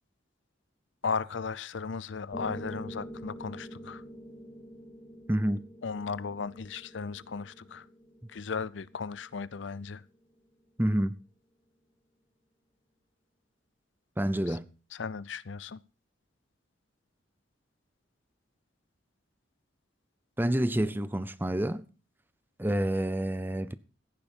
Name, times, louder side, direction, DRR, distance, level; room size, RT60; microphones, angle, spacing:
voice 1, 1.0-4.0 5.8-7.9 8.3-10.0 14.5-14.6 15.0-15.8, left 5 dB, 70° left, 0.6 m, -36 dB
Piano, 2.3-10.4, equal, 20° left, 3.5 m, -46 dB
voice 2, 5.3-5.6 10.8-11.1 14.2-14.7 20.4-21.8 22.6-23.7, right 1 dB, 10° right, 0.7 m, -28 dB
15.5 x 10.5 x 4.5 m
head